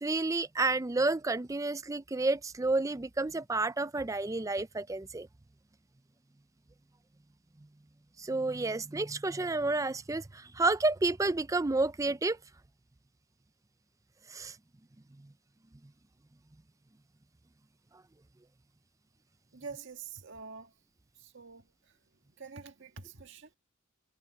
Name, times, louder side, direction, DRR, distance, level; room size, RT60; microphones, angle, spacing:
voice 1, 0.0-5.3 8.2-12.4 14.3-14.6, right 3 dB, 15° right, 0.4 m, -30 dB
voice 2, 19.5-20.8 21.1-23.6, right 5 dB, 60° right, 1.9 m, -47 dB
head